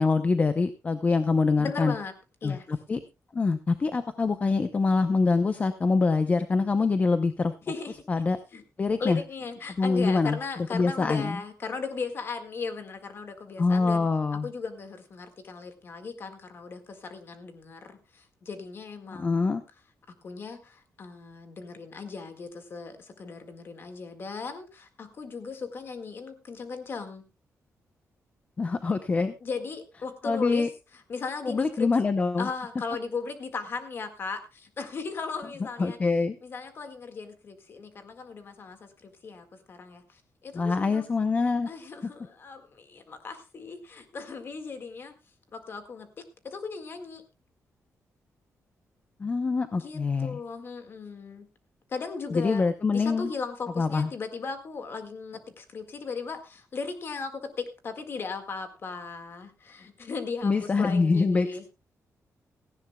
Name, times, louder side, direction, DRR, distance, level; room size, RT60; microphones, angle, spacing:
voice 1, 0.0-1.9 2.4-3.0 3.3-7.5 8.1-8.4 8.8-9.2 9.8-10.4 10.7-11.4 13.6-14.5 19.2-19.6 28.6-29.3 30.2-30.7 31.4-32.5 35.8-36.4 40.5-41.7 49.2-50.4 52.3-53.3 53.8-54.1 60.4-61.7, left 4 dB, 25° left, 10 dB, 0.7 m, -25 dB
voice 2, 1.6-2.1 2.4-2.7 7.6-8.0 8.5-8.6 9.0-14.1 14.4-19.5 20.1-27.2 29.4-30.7 31.1-31.9 32.4-36.0 36.4-41.1 41.7-45.1 45.5-47.2 49.7-51.5 51.9-52.6 52.9-61.6, left 4 dB, 45° left, 8 dB, 1.8 m, -37 dB
17.5 x 15.0 x 2.3 m, 0.26 s
wide cardioid pair, 165°, 6 cm